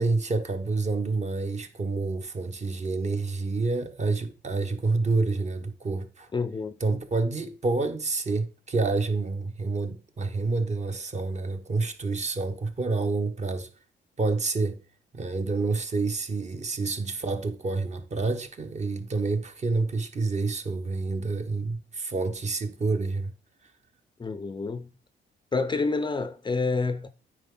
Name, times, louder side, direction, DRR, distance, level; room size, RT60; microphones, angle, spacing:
voice 1, 0.0-6.3 6.8-13.7 14.2-14.8 15.1-23.3, right 3 dB, 35° right, 1.1 m, -28 dB
voice 2, 6.3-7.0 24.2-24.9 25.5-27.1, left 4 dB, 25° left, 0.5 m, -28 dB
9.0 x 4.8 x 3.8 m
cardioid pair, 90°, 20 cm